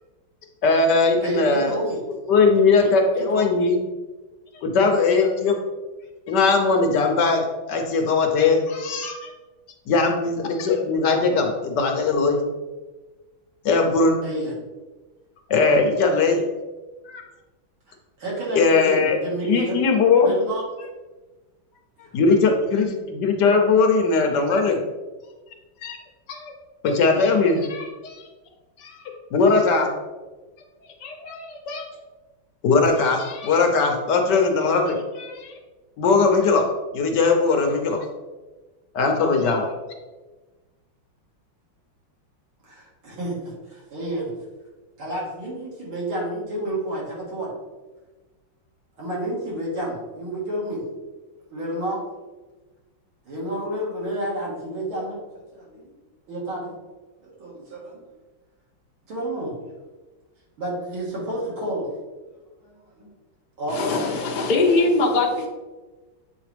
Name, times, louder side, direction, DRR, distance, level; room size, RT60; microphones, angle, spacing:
voice 1, 0.6-1.7 2.3-3.8 4.6-5.6 6.3-9.3 9.9-12.4 13.6-14.2 15.5-16.4 17.1-17.2 18.5-19.2 19.4-20.3 22.1-24.8 25.8-26.0 26.3-26.5 26.8-28.3 28.8-29.9 31.0-31.9 32.6-35.5 36.0-36.6 36.9-38.1 38.9-39.7, left 4 dB, 70° left, 3 dB, 1.2 m, -20 dB
voice 2, 1.2-2.0 2.8-3.5 14.2-14.5 18.2-19.8 20.2-20.6 42.6-44.3 45.0-47.5 49.0-50.9 51.5-52.0 53.3-55.9 56.3-56.7 57.2-58.0 59.1-59.6 60.6-61.9 62.6-63.1 63.6-64.1, right 1 dB, 80° right, -5 dB, 2.6 m, -30 dB
voice 3, 63.7-65.5, left 3 dB, 40° left, 0 dB, 0.6 m, -21 dB
7.6 x 4.0 x 3.3 m, 1.2 s
omnidirectional pair, 2.2 m